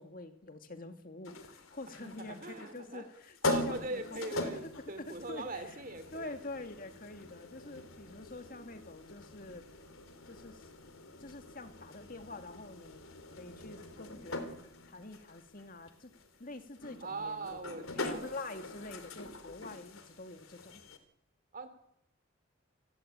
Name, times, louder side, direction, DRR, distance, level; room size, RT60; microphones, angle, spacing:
voice 1, 0.0-4.6 5.0-5.8 6.1-9.7 10.3-10.6 11.2-13.0 13.4-14.6 14.9-16.1 16.4-20.8, left 2 dB, 40° left, 7 dB, 2.2 m, -46 dB
sound 1, 1.2-21.0, left 2 dB, 80° left, 3.5 m, -42 dB
voice 2, 2.0-3.0 3.4-6.3 17.0-18.4 21.5-21.7, right 2 dB, 40° right, 10 dB, 3.2 m, -41 dB
28.0 x 17.5 x 8.9 m, 0.78 s
head